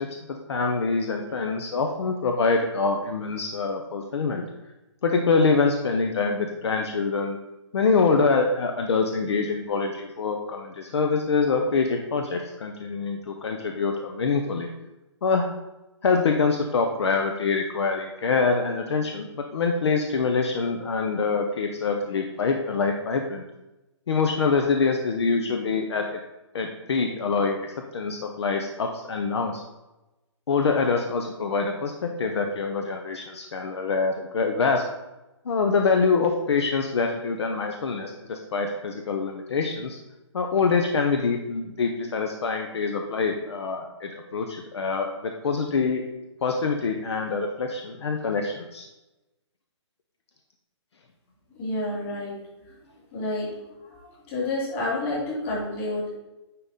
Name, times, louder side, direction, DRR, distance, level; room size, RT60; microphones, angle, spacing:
voice 1, 0.0-4.4 5.0-7.4 7.7-14.7 15.2-15.5 16.0-23.4 24.1-26.2 26.5-27.6 27.9-29.6 30.5-34.8 35.5-40.0 40.3-46.0 46.4-48.9, left 4 dB, 65° left, 4 dB, 0.7 m, -25 dB
voice 2, 51.6-52.4 52.7-53.5 53.8-56.2, left 2 dB, 25° left, -4 dB, 2.3 m, -30 dB
9.5 x 3.7 x 4.1 m, 1.0 s
hypercardioid pair, 170°, 15 cm